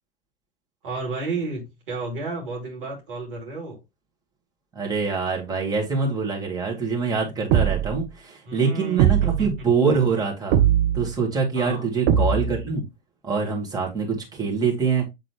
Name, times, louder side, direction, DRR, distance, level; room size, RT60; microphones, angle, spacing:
voice 1, 0.8-3.8 8.4-9.5 11.5-11.9, right 3 dB, 65° right, 3.0 m, -32 dB
voice 2, 4.7-10.6 10.9-12.8 13.2-15.1, right 5 dB, 15° right, 2.2 m, -24 dB
sound 1, 7.5-8.1 9.0-9.6 10.5-11.1 12.1-12.7, right 9 dB, 40° right, 0.9 m, -20 dB
7.8 x 3.8 x 3.2 m
figure-of-eight pair, 90°, 29 cm